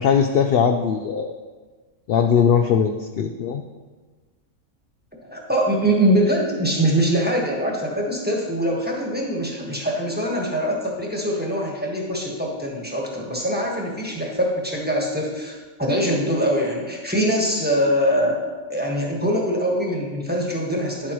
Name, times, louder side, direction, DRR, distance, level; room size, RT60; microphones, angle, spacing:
voice 1, 0.0-1.4 2.1-3.6, left 7 dB, 65° left, 6 dB, 0.6 m, -20 dB
voice 2, 5.2-18.4 18.7-21.1, equal, 10° right, -2 dB, 1.3 m, -23 dB
9.9 x 8.5 x 3.1 m, 1.3 s
omnidirectional pair, 1.4 m